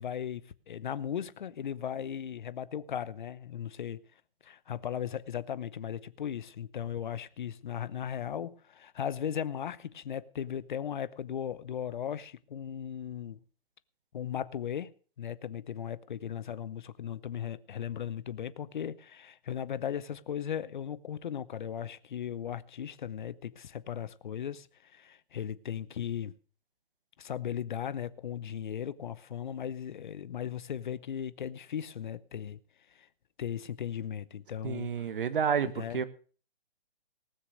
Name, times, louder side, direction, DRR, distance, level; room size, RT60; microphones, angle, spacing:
voice 1, 0.0-4.0 4.4-13.4 14.1-14.9 15.2-26.3 27.2-32.6 32.9-33.1 33.4-35.2 35.8-36.0, left 9 dB, 50° left, 0.8 m, -37 dB
voice 2, 34.6-36.1, right 7 dB, 60° right, 1.5 m, -30 dB
19.0 x 6.6 x 6.4 m
hypercardioid pair, 165°, 30 cm